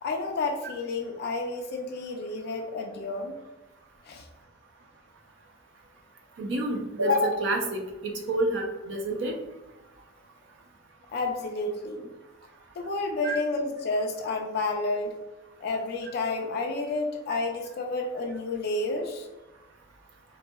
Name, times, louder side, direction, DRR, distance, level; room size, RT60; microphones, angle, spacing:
voice 1, 0.0-3.3 4.1-4.2 11.1-12.1 12.8-15.2 15.6-19.3, left 3 dB, 55° left, 2 dB, 0.4 m, -30 dB
voice 2, 6.4-9.3 13.2-13.4 17.3-17.4, equal, 70° right, 1 dB, 0.5 m, -28 dB
4.0 x 2.6 x 2.2 m, 1.1 s
head